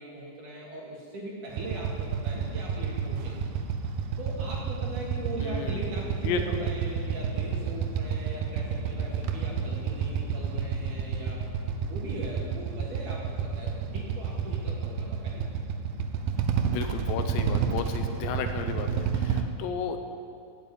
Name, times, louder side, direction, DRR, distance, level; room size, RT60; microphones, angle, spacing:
voice 1, 0.0-3.5 4.2-11.4 11.8-15.5, right 2 dB, 55° right, -3 dB, 2.7 m, -40 dB
Motorcycle / Idling, 1.5-19.4, right 6 dB, 85° right, 2.1 m, -30 dB
voice 2, 5.4-5.9 6.2-6.7 16.7-20.0, left 6 dB, 80° left, 7 dB, 3.0 m, -33 dB
15.0 x 7.5 x 9.1 m, 2.4 s
omnidirectional pair, 5.3 m